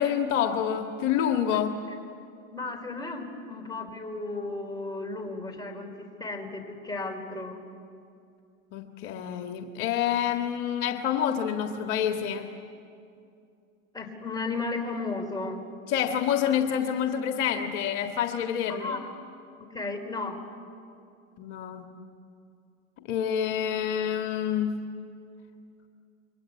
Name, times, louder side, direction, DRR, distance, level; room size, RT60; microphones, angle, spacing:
voice 1, 0.0-1.7 8.7-12.5 15.9-19.0 21.4-21.9 23.1-24.9, left 9 dB, 60° left, 4 dB, 1.9 m, -27 dB
voice 2, 2.5-7.6 13.9-15.6 18.7-19.1 19.7-20.4, left 3 dB, 10° left, 3 dB, 4.1 m, -34 dB
27.5 x 23.5 x 8.5 m, 2.5 s
hypercardioid pair, 105°, 40 cm